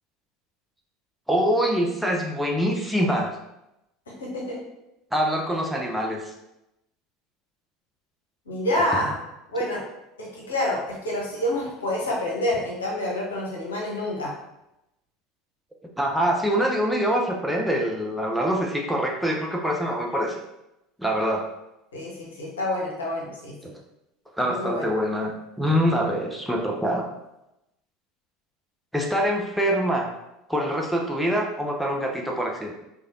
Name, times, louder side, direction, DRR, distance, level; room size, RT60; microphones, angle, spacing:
voice 1, 1.3-3.4 5.1-6.3 16.0-20.4 21.0-21.5 24.4-27.1 28.9-30.1 30.5-32.7, equal, ahead, 0 dB, 0.5 m, -24 dB
voice 2, 4.1-4.6 8.5-9.2 9.5-9.8 10.2-14.3 21.9-23.5 24.5-24.9, left 1 dB, 70° left, -3 dB, 1.0 m, -28 dB
4.8 x 2.3 x 2.7 m, 0.89 s
figure-of-eight pair, 70°, 0 cm